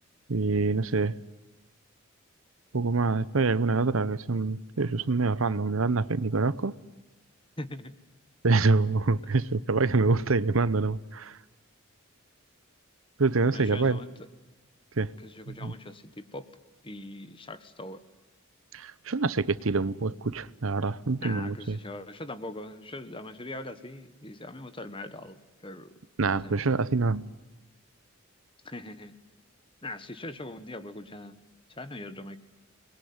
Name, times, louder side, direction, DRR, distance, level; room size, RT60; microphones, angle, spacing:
voice 1, 0.3-1.2 2.7-6.7 8.4-11.4 13.2-14.0 15.0-15.1 15.5-15.7 18.7-21.8 26.2-27.3, right 3 dB, 75° right, 0.9 m, -26 dB
voice 2, 7.6-7.9 13.5-14.1 15.2-16.5 16.8-18.0 21.2-25.9 26.3-26.5 28.6-29.2 29.8-31.4 31.7-32.4, left 1 dB, 25° left, 1.5 m, -41 dB
29.0 x 21.5 x 9.6 m
head